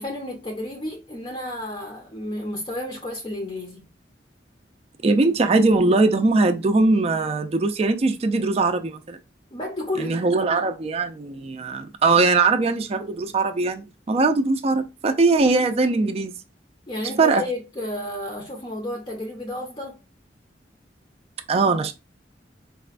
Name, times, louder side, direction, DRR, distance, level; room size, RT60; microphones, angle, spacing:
voice 1, 0.0-3.8 9.5-10.3 16.9-20.0, left 1 dB, 25° left, 0.6 m, -31 dB
voice 2, 5.0-9.2 10.0-16.3 17.2-17.4 21.5-21.9, right 3 dB, 35° right, 0.4 m, -21 dB
4.1 x 2.1 x 2.4 m
head